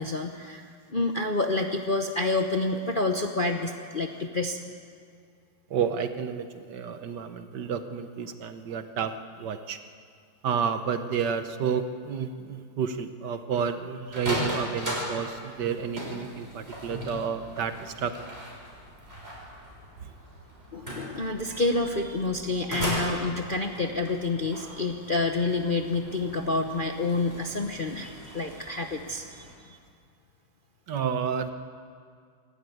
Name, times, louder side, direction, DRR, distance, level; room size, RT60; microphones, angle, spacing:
voice 1, 0.0-4.6 20.7-29.8, left 3 dB, 40° left, 3 dB, 0.8 m, -28 dB
voice 2, 5.7-9.1 9.4-9.8 10.4-18.4 30.9-31.5, right 7 dB, 65° right, 9 dB, 1.5 m, -30 dB
sound 1, 14.0-29.5, equal, 30° right, 5.8 m, -38 dB
24.5 x 12.5 x 9.3 m, 2.2 s
omnidirectional pair, 2.1 m